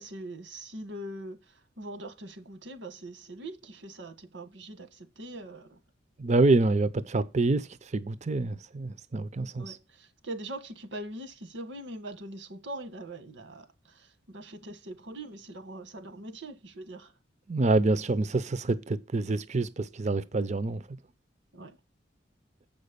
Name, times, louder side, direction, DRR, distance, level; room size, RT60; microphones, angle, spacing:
voice 1, 0.0-5.8 9.6-17.1 21.5-21.8, right 1 dB, 85° right, 1.5 m, -42 dB
voice 2, 6.2-7.7 7.9-9.8 17.5-20.8, right 2 dB, 40° right, 0.6 m, -26 dB
7.5 x 5.3 x 6.6 m
head